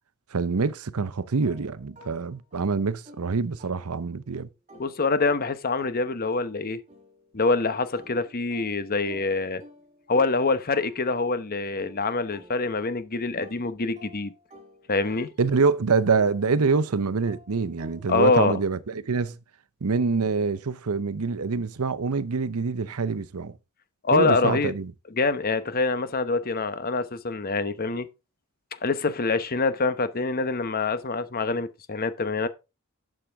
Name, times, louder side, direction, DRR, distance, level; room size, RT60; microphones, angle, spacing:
voice 1, 0.3-4.5 15.4-19.4 19.8-23.5 24.1-24.9, right 4 dB, 85° right, 0.7 m, -25 dB
sound 1, 1.4-4.3 4.7-13.0 13.4-18.9, left 1 dB, 35° right, 4.2 m, -51 dB
voice 2, 4.8-6.8 7.3-9.6 10.1-14.3 14.9-15.3 18.1-18.6 24.0-24.7 25.1-28.1 28.8-32.5, left 3 dB, 45° left, 1.0 m, -25 dB
11.5 x 7.5 x 3.6 m
head